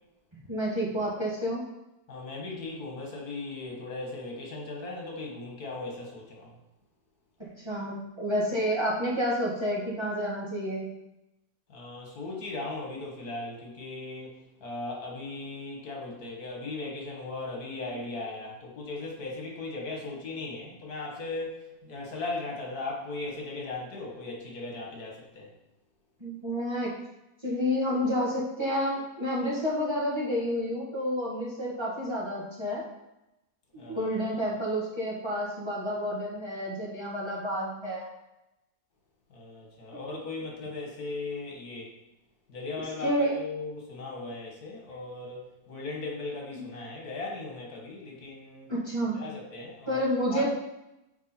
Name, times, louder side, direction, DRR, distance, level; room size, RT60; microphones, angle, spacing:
voice 1, 0.5-1.6 7.4-10.9 26.2-26.9 27.4-32.9 33.7-38.1 43.0-43.4 46.5-46.6 48.7-49.2 49.9-50.5, equal, 20° right, -7 dB, 1.6 m, -29 dB
voice 2, 2.1-6.6 11.7-25.5 33.8-34.3 39.3-41.9 42.5-48.7 49.1-50.0 50.3-50.5, left 3 dB, 80° left, -1 dB, 2.0 m, -38 dB
7.1 x 4.6 x 4.3 m, 0.93 s
omnidirectional pair, 1.6 m